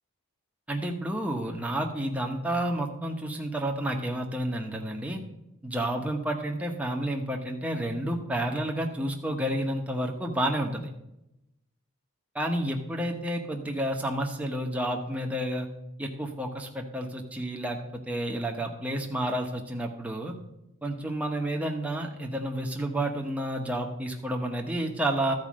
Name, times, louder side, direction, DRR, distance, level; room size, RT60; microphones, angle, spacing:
voice 1, 0.7-5.2 5.6-10.9 12.3-15.7 16.0-20.3 20.8-25.3, right 1 dB, 5° right, 1 dB, 1.0 m, -30 dB
13.0 x 4.8 x 6.2 m, 0.87 s
head